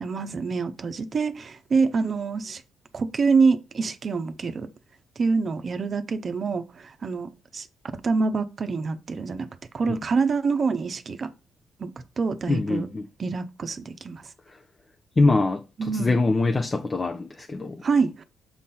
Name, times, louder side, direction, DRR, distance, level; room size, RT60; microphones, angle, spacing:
voice 1, 0.0-2.6 2.9-4.7 5.2-7.7 8.0-9.5 9.7-11.3 11.8-11.9 12.2-12.9 13.2-14.3 15.8-16.2 17.8-18.2, right 4 dB, 45° right, 0.8 m, -26 dB
voice 2, 12.5-13.1 14.5-14.6 15.2-17.8, left 3 dB, 25° left, 0.6 m, -24 dB
7.2 x 3.8 x 4.3 m
cardioid pair, 90°, 0 cm